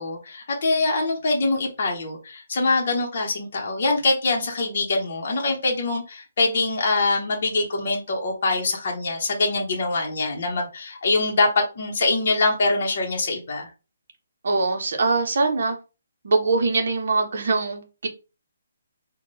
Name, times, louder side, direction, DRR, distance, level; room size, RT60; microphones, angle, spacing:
voice 1, 0.0-13.7, left 3 dB, 35° left, -1 dB, 0.8 m, -24 dB
voice 2, 14.4-15.7 16.2-18.1, right 3 dB, 50° right, 4 dB, 0.8 m, -22 dB
3.6 x 2.2 x 3.9 m, 0.31 s
hypercardioid pair, 180°, 0 cm